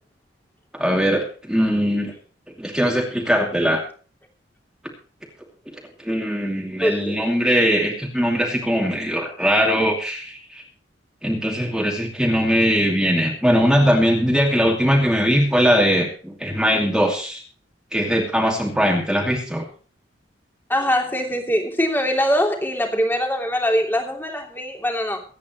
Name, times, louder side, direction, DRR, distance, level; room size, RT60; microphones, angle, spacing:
voice 1, 0.7-2.1 2.6-3.8 6.0-10.6 11.2-17.4 17.9-19.6, equal, 5° right, 2.6 m, -20 dB
voice 2, 6.8-7.2 20.7-25.2, equal, 10° left, 3.0 m, -22 dB
24.5 x 9.6 x 3.1 m
head